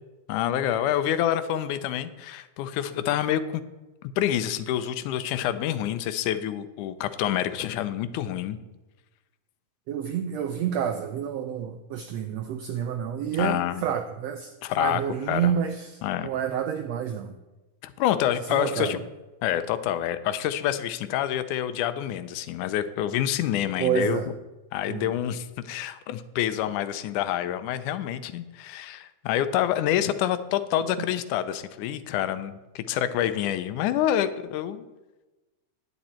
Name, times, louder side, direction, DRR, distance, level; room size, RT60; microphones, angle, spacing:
voice 1, 0.3-3.6 4.0-8.6 13.4-13.8 14.6-15.0 15.3-15.5 16.0-16.3 17.8-19.0 19.4-24.2 24.7-34.9, left 11 dB, 80° left, 2.1 m, -27 dB
voice 2, 9.9-17.4 18.5-19.0 23.8-24.3 24.9-25.1, right 8 dB, 85° right, 1.4 m, -29 dB
10.0 x 9.6 x 4.3 m
omnidirectional pair, 3.6 m